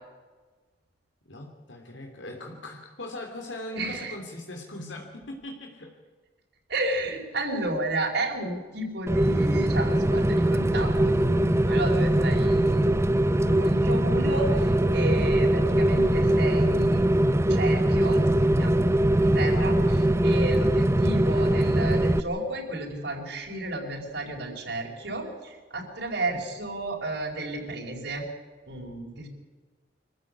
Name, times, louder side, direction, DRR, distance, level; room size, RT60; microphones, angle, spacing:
voice 1, 1.2-6.0 26.3-26.4, left 1 dB, 80° left, 3 dB, 3.0 m, -40 dB
voice 2, 3.7-4.1 6.7-28.3 28.7-29.3, right 2 dB, 65° right, -1 dB, 4.7 m, -32 dB
Rain, 9.1-22.2, right 1 dB, 15° right, 0.6 m, -22 dB
25.0 x 14.5 x 8.8 m, 1.4 s
head